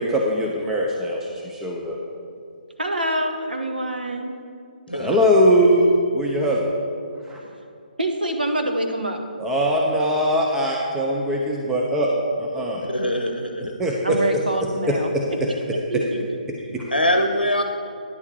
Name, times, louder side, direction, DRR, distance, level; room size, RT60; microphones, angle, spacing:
voice 1, 0.0-2.0 5.0-6.6 7.3-7.4 9.4-12.1 12.4-12.9 13.8-14.2 14.9-15.2 16.7-16.8, equal, 5° right, -2 dB, 0.6 m, -21 dB
voice 2, 2.8-4.3 8.0-9.2 14.0-15.4 15.7-16.2 16.7-17.0, right 1 dB, 75° right, 4 dB, 1.0 m, -26 dB
voice 3, 4.9-5.3 12.9-13.7 16.9-17.6, left 1 dB, 85° left, 4 dB, 0.7 m, -23 dB
9.9 x 4.5 x 6.9 m, 2.3 s
figure-of-eight pair, 135°, 5 cm